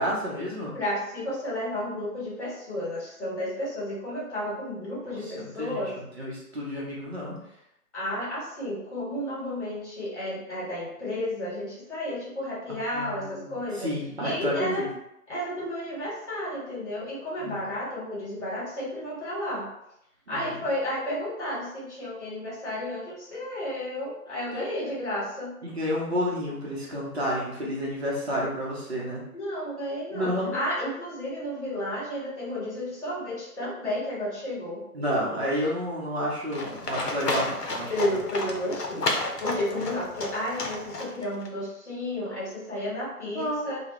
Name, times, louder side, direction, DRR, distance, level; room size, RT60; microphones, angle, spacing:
voice 1, 0.0-0.7 5.1-5.8 6.2-7.4 12.9-14.9 17.4-17.6 20.3-20.6 24.5-25.0 25.6-29.2 30.1-30.6 34.9-38.2 43.3-43.7, equal, 45° right, -5 dB, 0.6 m, -30 dB
voice 2, 0.7-5.9 7.9-13.9 14.2-14.9 15.3-19.7 20.3-25.5 29.3-34.8 37.9-43.8, left 1 dB, 45° left, -6 dB, 1.3 m, -32 dB
Livestock farm animals working animals, 36.5-41.5, left 2 dB, 80° left, 0.7 m, -32 dB
2.2 x 2.1 x 2.9 m, 0.81 s
figure-of-eight pair, 155°, 47 cm